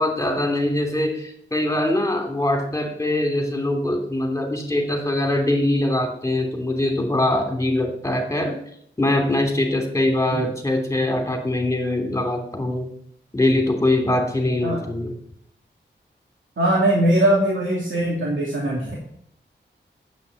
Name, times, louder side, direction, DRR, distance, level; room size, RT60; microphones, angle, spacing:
voice 1, 0.0-8.5 9.0-12.9 13.3-15.1, left 1 dB, 15° left, 3 dB, 2.9 m, -22 dB
voice 2, 16.6-18.9, right 1 dB, 80° right, -3 dB, 2.8 m, -20 dB
9.7 x 8.2 x 8.2 m, 0.68 s
wide cardioid pair, 100°, 20 cm